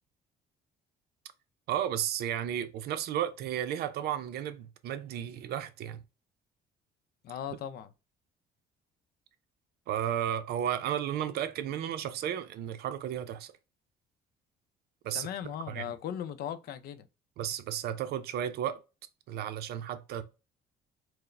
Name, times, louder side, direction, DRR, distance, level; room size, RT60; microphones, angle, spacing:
voice 1, 1.7-6.0 9.9-13.5 15.0-15.3 15.7-15.9 17.4-18.8 19.3-20.2, right 10 dB, 70° right, 0.5 m, -33 dB
voice 2, 7.2-7.9 15.1-17.1, left 10 dB, 65° left, 0.5 m, -38 dB
4.6 x 2.1 x 3.2 m
cardioid pair, 110°, 17 cm